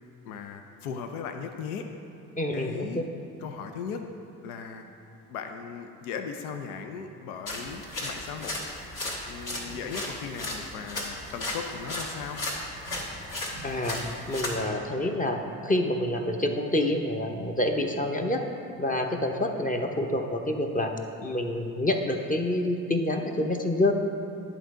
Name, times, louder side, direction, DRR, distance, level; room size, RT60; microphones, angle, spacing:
voice 1, 0.2-1.9 2.5-3.1 3.4-4.0 4.4-4.9 5.3-8.7 9.3-12.4, left 6 dB, 80° left, 6 dB, 0.6 m, -37 dB
voice 2, 2.4-2.9 13.6-14.0 14.3-18.4 18.8-20.9 21.2-23.9, left 1 dB, 20° left, 4 dB, 0.8 m, -27 dB
sound 1, 7.5-14.6, left 1 dB, 45° left, 1.7 m, -35 dB
10.0 x 4.0 x 4.8 m, 2.7 s
hypercardioid pair, 50°, 43 cm